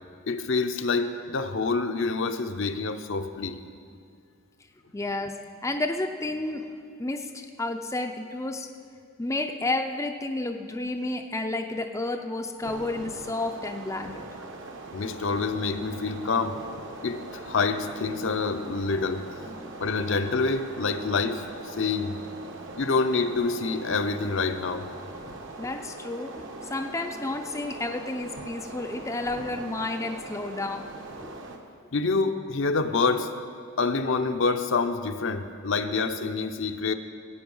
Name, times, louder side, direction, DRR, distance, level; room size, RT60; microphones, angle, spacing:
voice 1, 0.3-3.6 14.9-16.6 17.0-19.3 19.8-22.2 22.8-24.9 31.9-33.3 33.8-36.9, left 4 dB, 60° left, 7 dB, 0.6 m, -27 dB
voice 2, 4.9-6.7 7.0-8.7 9.2-14.3 19.5-19.7 25.6-30.9 31.2-31.3, left 2 dB, 15° left, 4 dB, 0.5 m, -31 dB
sound 1, 12.6-31.6, right 2 dB, 60° right, 1.1 m, -41 dB
16.5 x 8.7 x 5.4 m, 2.2 s
head